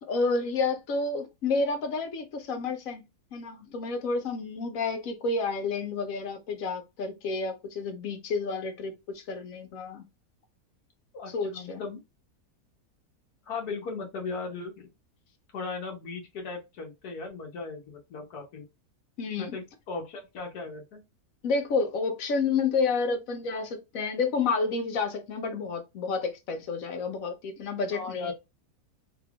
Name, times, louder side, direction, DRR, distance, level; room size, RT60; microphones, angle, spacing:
voice 1, 0.0-3.0 3.3-10.0 11.3-11.8 19.2-19.6 21.4-28.3, left 4 dB, 65° left, 1.2 m, -30 dB
voice 2, 11.1-12.0 13.4-14.9 15.5-18.6 19.4-21.0 27.9-28.3, left 4 dB, 85° left, 1.5 m, -37 dB
3.8 x 3.5 x 2.4 m
omnidirectional pair, 1.6 m